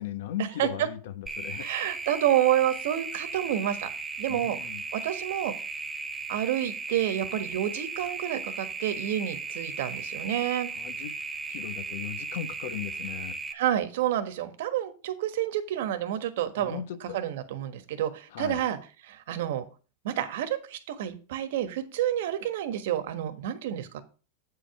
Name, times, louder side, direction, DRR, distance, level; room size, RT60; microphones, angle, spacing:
voice 1, 0.0-1.7 4.3-4.8 10.7-11.1 11.5-13.4 16.6-17.2 18.3-18.6, left 11 dB, 70° left, 12 dB, 1.1 m, -37 dB
sound 1, 1.3-13.5, right 4 dB, 10° right, 0.9 m, -36 dB
voice 2, 1.6-3.9 4.2-4.6 4.9-5.5 6.3-10.7 13.5-16.8 17.1-18.8 19.0-19.6 20.0-24.0, right 11 dB, 70° right, 9 dB, 1.3 m, -29 dB
8.7 x 4.9 x 5.8 m, 0.35 s
supercardioid pair, 140°, 0 cm